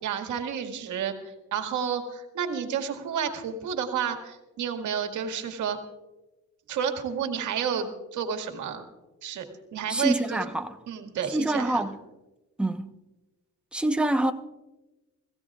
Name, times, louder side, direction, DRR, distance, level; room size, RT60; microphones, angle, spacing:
voice 1, 0.0-5.8 6.7-8.8 9.2-9.5 9.7-10.4 10.9-11.8, right 7 dB, 80° right, 1.9 m, -31 dB
voice 2, 9.9-10.8 11.3-12.0 12.6-12.9 13.7-14.3, right 1 dB, 5° right, 1.0 m, -26 dB
25.5 x 15.5 x 2.4 m
cardioid pair, 90°, 30 cm